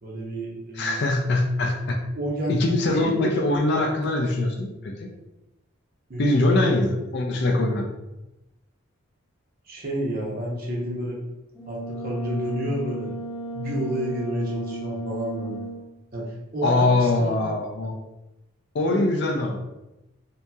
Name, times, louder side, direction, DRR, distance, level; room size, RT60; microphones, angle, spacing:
voice 1, 0.0-1.0 2.1-2.6 2.9-3.4 6.1-6.3 9.6-11.2 11.7-13.1 13.5-15.6 16.1-17.4 18.9-19.3, equal, 45° right, -3 dB, 0.7 m, -30 dB
voice 2, 0.8-2.0 2.5-5.1 6.2-7.8 16.6-17.9 18.7-19.6, left 2 dB, 50° left, 2 dB, 0.4 m, -22 dB
Brass instrument, 11.5-15.9, right 1 dB, ahead, 0.5 m, -34 dB
2.8 x 2.6 x 2.3 m, 0.98 s
head